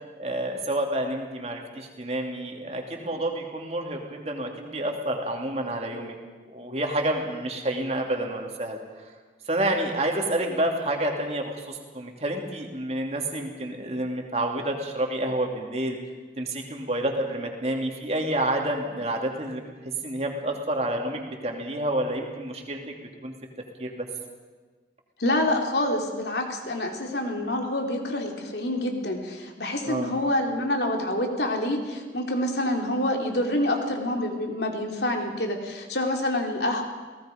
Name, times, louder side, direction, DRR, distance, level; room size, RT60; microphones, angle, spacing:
voice 1, 0.2-6.1 6.5-8.8 9.5-16.0 16.4-19.7 20.0-23.3 23.8-24.1 29.9-30.1, right 1 dB, 35° right, 2 dB, 2.8 m, -29 dB
voice 2, 25.2-36.8, left 1 dB, 70° left, 2 dB, 3.0 m, -27 dB
29.0 x 18.5 x 5.2 m, 1.4 s
head